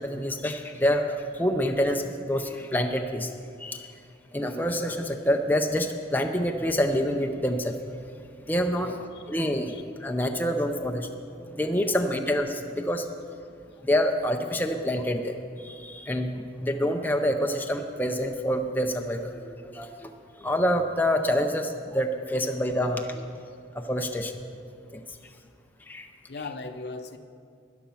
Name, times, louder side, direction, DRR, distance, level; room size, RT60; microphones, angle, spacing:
voice 1, 0.0-3.3 3.6-3.9 4.3-7.7 8.5-8.9 9.3-9.7 10.0-11.1 11.5-13.0 13.8-15.3 15.6-20.1 20.4-23.2 23.9-24.3 24.9-25.0 25.9-26.1, equal, 10° left, 4 dB, 0.5 m, -27 dB
voice 2, 8.8-9.2 9.7-9.8 11.8-12.0 25.2-25.3 26.3-27.2, left 3 dB, 60° left, 9 dB, 0.7 m, -39 dB
12.5 x 10.5 x 5.8 m, 2.4 s
head